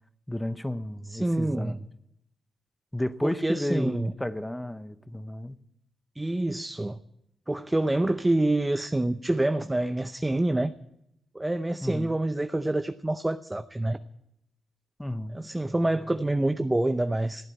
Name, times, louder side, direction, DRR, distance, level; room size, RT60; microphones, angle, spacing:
voice 1, 0.3-1.8 2.9-5.6 11.8-12.2 15.0-15.4, left 1 dB, 10° left, 0.8 m, -32 dB
voice 2, 1.1-1.8 3.2-4.1 6.2-7.0 7.5-10.7 11.3-14.0 15.3-17.5, right 1 dB, 15° right, 0.6 m, -27 dB
14.5 x 8.9 x 8.4 m
supercardioid pair, 55°, 0 cm